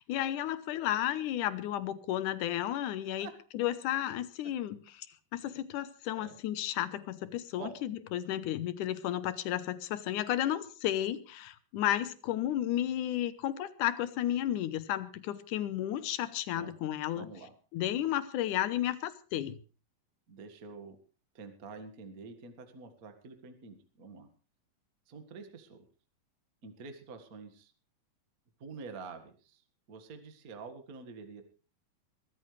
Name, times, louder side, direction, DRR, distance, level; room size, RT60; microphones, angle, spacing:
voice 1, 0.0-5.1 5.3-17.3 17.7-19.6, left 12 dB, 70° left, 14 dB, 2.2 m, -33 dB
voice 2, 17.1-17.5 20.3-21.0 21.3-24.3 25.1-25.8 26.6-27.7 28.6-29.6 29.9-31.4, right 4 dB, 35° right, 7 dB, 1.4 m, -47 dB
22.0 x 14.5 x 3.3 m, 0.36 s
omnidirectional pair, 4.1 m